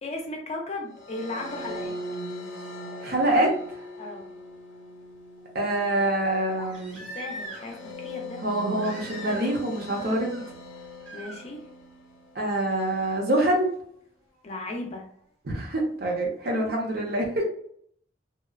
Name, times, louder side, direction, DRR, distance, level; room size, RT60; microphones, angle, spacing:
voice 1, 0.0-1.9 4.0-4.2 7.1-8.4 11.1-11.6 14.4-15.0, left 2 dB, 35° left, 1 dB, 0.5 m, -36 dB
sound 1, 0.9-12.3, equal, 85° left, 0.5 m, -40 dB
voice 2, 3.0-3.5 5.5-7.0 8.4-10.4 12.4-13.7 15.5-17.4, right 1 dB, 55° right, 0 dB, 0.7 m, -25 dB
Crying sobbing, 3.8-3.9 6.5-7.9 8.8-9.6 9.9-10.4 11.0-11.4 13.0-13.1, right 1 dB, 75° right, 1.2 m, -41 dB
2.8 x 2.0 x 2.4 m, 0.64 s
head